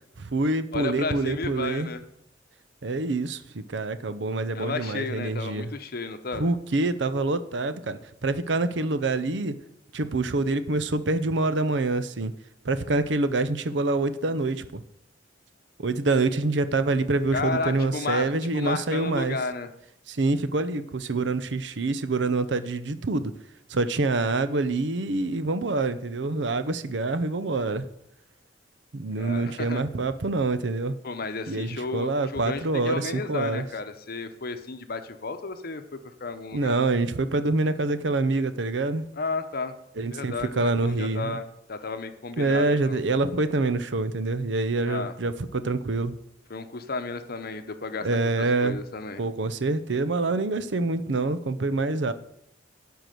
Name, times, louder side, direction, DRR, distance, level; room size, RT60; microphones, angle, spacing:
voice 1, 0.2-1.9 2.8-5.7 6.3-9.5 9.9-12.3 12.6-14.8 15.8-19.4 20.1-23.3 23.7-27.9 28.9-31.0 31.5-33.7 36.5-39.0 40.0-41.4 42.4-46.2 48.0-48.8 49.2-52.1, right 3 dB, 70° right, 12 dB, 0.7 m, -26 dB
voice 2, 0.7-2.0 4.5-6.5 17.3-19.7 29.2-29.8 31.0-36.9 39.2-39.7 40.1-43.0 44.9-45.1 46.5-48.1 48.6-49.2, left 3 dB, 55° left, 9 dB, 0.9 m, -33 dB
12.0 x 4.8 x 7.7 m, 0.78 s
head